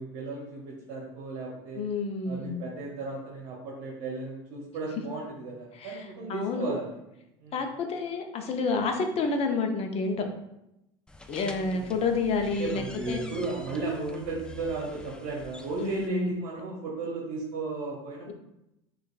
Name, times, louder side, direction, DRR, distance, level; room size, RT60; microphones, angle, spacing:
voice 1, 0.0-1.8 2.2-7.0 7.4-7.7 11.6-11.9 12.6-18.3, right 3 dB, 65° right, -2 dB, 0.9 m, -35 dB
voice 2, 1.8-2.6 5.8-6.0 6.3-6.7 7.5-10.2 11.3-13.2 15.8-16.3 18.3-18.4, left 4 dB, 45° left, 4 dB, 0.7 m, -29 dB
sound 1, 11.1-16.1, left 2 dB, 5° left, 0.4 m, -46 dB
6.2 x 2.5 x 2.4 m, 0.87 s
supercardioid pair, 95°, 15 cm